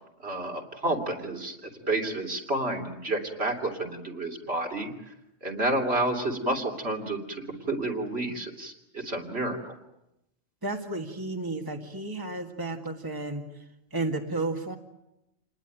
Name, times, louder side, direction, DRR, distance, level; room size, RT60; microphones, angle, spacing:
voice 1, 0.2-1.5 1.9-4.9 5.4-7.2 7.5-9.6, right 2 dB, 55° right, 1 dB, 3.2 m, -30 dB
voice 2, 10.6-13.6 13.9-14.8, right 2 dB, 15° right, 3 dB, 2.0 m, -32 dB
28.5 x 20.0 x 9.3 m, 0.90 s
omnidirectional pair, 1.3 m